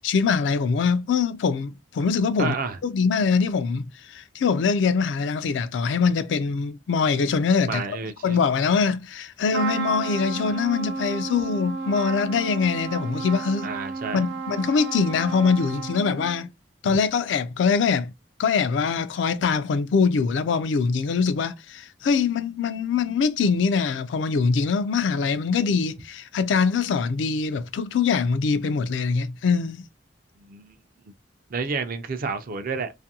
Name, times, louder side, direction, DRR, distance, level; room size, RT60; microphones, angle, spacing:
voice 1, 0.0-2.5 2.8-7.8 8.2-13.7 14.1-16.5 16.8-18.1 18.4-29.8, left 5 dB, 75° left, 0.3 m, -23 dB
voice 2, 2.4-2.8 7.7-8.4 13.6-14.2 16.8-17.0 30.5-30.7 31.5-32.9, right 4 dB, 50° right, 0.4 m, -30 dB
Trumpet, 9.5-16.4, right 4 dB, 80° right, 0.7 m, -32 dB
2.5 x 2.4 x 2.7 m
head